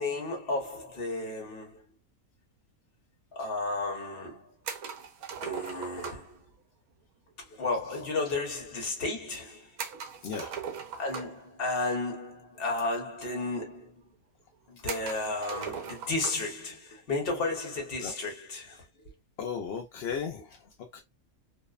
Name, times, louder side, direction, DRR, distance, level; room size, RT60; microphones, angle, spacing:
voice 1, 0.0-1.8 3.3-4.5 5.4-6.4 7.5-9.7 11.0-13.9 14.7-18.8, left 2 dB, 45° left, 0.9 m, -33 dB
sound 1, 4.6-6.4 9.8-11.5 12.6-12.7 12.9-13.0 13.8-13.9 14.9-16.5, right 6 dB, 75° right, 1.0 m, -39 dB
voice 2, 19.4-20.6 20.9-21.0, left 6 dB, 65° left, 0.6 m, -35 dB
2.7 x 2.0 x 2.3 m
omnidirectional pair, 1.6 m